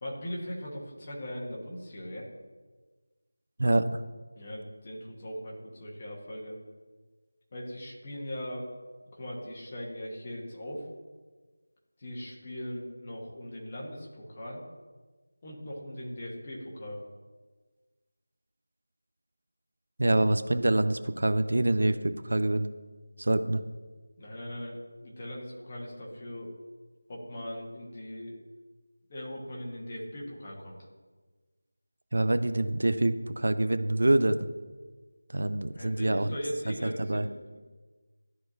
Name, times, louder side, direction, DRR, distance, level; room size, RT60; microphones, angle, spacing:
voice 1, 0.0-2.3 4.3-6.6 7.5-8.7 9.1-10.9 12.0-14.6 15.4-17.0 24.2-26.5 27.1-28.4 29.1-30.9 35.7-37.3, equal, 25° left, -3 dB, 1.4 m, -39 dB
voice 2, 3.6-4.0 20.0-22.7 23.2-23.6 32.1-34.5 35.3-36.3 37.0-37.3, right 1 dB, 65° right, 11 dB, 0.5 m, -25 dB
13.0 x 4.5 x 2.7 m, 1.3 s
figure-of-eight pair, 175°, 0 cm